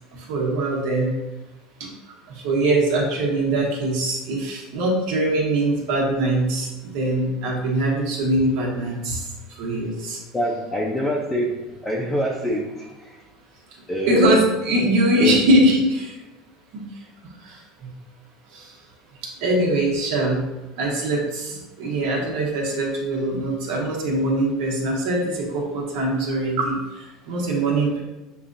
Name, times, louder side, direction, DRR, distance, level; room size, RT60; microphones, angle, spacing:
voice 1, 0.1-1.1 1.8-1.9 2.3-9.3 9.6-10.2 14.1-16.2 16.7-16.8 17.4-17.6 18.5-18.7 19.4-20.4 20.8-28.0, right 1 dB, 70° right, -3 dB, 1.3 m, -22 dB
voice 2, 10.3-13.2 13.9-14.5 15.2-15.4, equal, 15° left, -4 dB, 0.6 m, -25 dB
6.8 x 2.5 x 2.6 m, 1.1 s
supercardioid pair, 130°, 0 cm